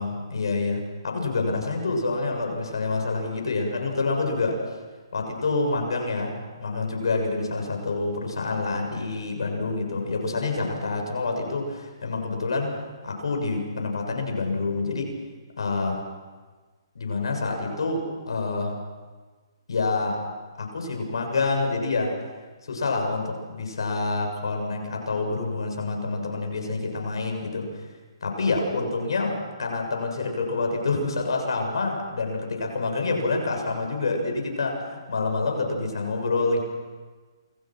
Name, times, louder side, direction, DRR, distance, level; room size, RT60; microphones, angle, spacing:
voice 1, 0.0-4.6 5.1-12.8 13.0-15.1 15.6-16.0 17.0-18.7 19.7-20.2 20.6-22.2 22.7-27.8 28.2-36.6, left 3 dB, 80° left, 2 dB, 7.0 m, -27 dB
28.5 x 21.5 x 6.3 m, 1.4 s
hypercardioid pair, 155°, 3 cm